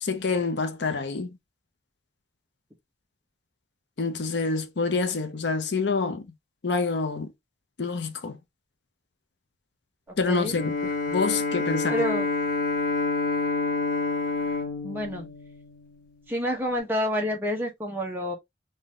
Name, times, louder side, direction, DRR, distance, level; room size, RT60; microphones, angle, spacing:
voice 1, 0.0-1.4 4.0-6.2 6.6-7.3 7.8-8.4 10.2-10.7 11.1-12.0, left 4 dB, 65° left, 0.6 m, -27 dB
voice 2, 10.2-10.6 11.9-12.3 14.8-15.3 16.3-18.3, equal, 10° right, 1.0 m, -28 dB
Bowed string instrument, 10.4-16.1, left 3 dB, 45° left, 1.3 m, -28 dB
3.9 x 2.7 x 3.0 m
head